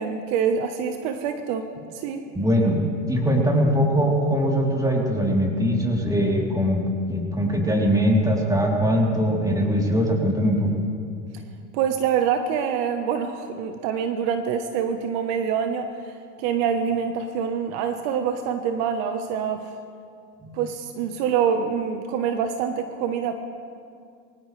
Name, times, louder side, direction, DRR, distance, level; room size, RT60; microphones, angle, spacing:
voice 1, 0.0-1.7 1.9-2.2 11.7-16.1 16.4-19.7 20.5-23.3, right 7 dB, 60° right, 7 dB, 1.2 m, -25 dB
voice 2, 2.3-2.8 3.1-10.7 20.4-20.6, equal, 10° right, -2 dB, 3.5 m, -21 dB
23.0 x 18.0 x 3.4 m, 2.3 s
supercardioid pair, 105°, 37 cm